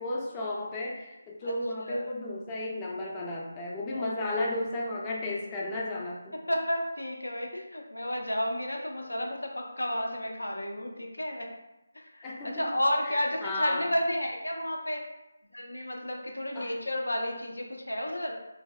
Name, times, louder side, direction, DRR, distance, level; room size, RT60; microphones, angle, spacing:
voice 1, 0.0-6.4 12.2-12.7 13.0-13.9 16.5-16.7, left 1 dB, 20° left, -2 dB, 0.4 m, -34 dB
voice 2, 3.9-4.5 6.3-11.5 11.9-15.0 15.5-18.3, left 1 dB, 80° left, 1 dB, 0.5 m, -32 dB
3.3 x 2.2 x 2.3 m, 0.97 s
figure-of-eight pair, 155°, 0 cm